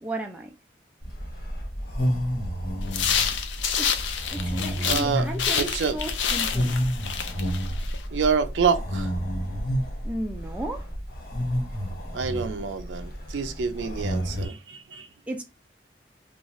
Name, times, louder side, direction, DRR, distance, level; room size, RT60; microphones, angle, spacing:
voice 1, 0.0-0.5 3.8-4.0 4.3-6.7 10.0-10.9 15.3-15.4, right 1 dB, 5° right, 0.4 m, -34 dB
sound 1, 1.0-14.5, equal, 55° left, 1.1 m, -30 dB
sound 2, 2.9-5.1 5.4-8.0, left 7 dB, 85° left, 0.4 m, -28 dB
voice 2, 4.9-6.0 8.1-9.1 12.1-15.1, right 6 dB, 90° right, 0.4 m, -27 dB
2.5 x 2.3 x 3.0 m
head